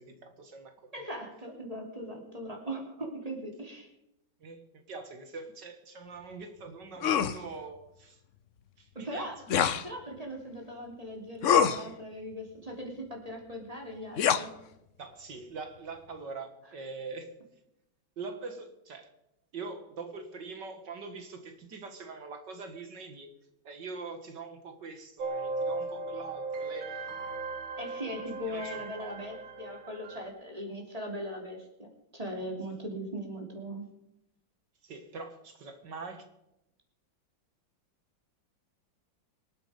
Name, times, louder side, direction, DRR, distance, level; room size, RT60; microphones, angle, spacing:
voice 1, 0.0-1.1 4.4-8.2 8.8-9.3 15.0-17.3 18.2-19.1 19.5-23.4 23.6-27.1 28.5-29.4 34.8-36.3, right 4 dB, 60° right, 6 dB, 2.1 m, -43 dB
voice 2, 0.9-3.9 9.0-9.3 9.8-14.5 27.8-33.9, equal, 15° right, 1 dB, 3.4 m, -39 dB
sound 1, 7.0-7.4 9.5-9.9 11.4-11.8 14.2-14.4, left 8 dB, 60° left, 0.8 m, -24 dB
sound 2, 25.2-30.3, right 3 dB, 80° right, 2.2 m, -37 dB
25.5 x 8.8 x 5.2 m, 0.85 s
omnidirectional pair, 2.1 m